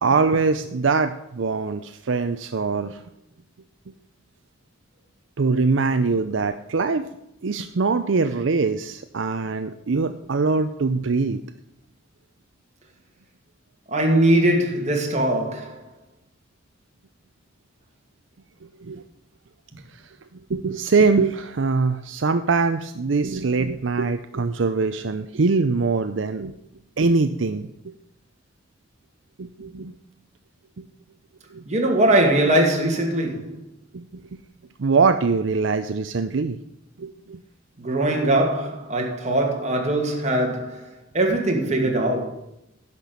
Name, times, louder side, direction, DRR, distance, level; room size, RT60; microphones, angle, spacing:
voice 1, 0.0-3.0 5.4-7.0 7.4-11.4 18.6-19.0 20.5-26.6 27.0-27.7 29.4-29.9 31.5-31.6 33.9-34.2 34.8-36.6 37.0-37.4, right 4 dB, 70° right, 0.6 m, -23 dB
voice 2, 13.9-15.7 31.7-33.6 37.8-40.9 41.1-42.3, right 1 dB, 35° right, 2.3 m, -21 dB
11.0 x 6.0 x 6.9 m
head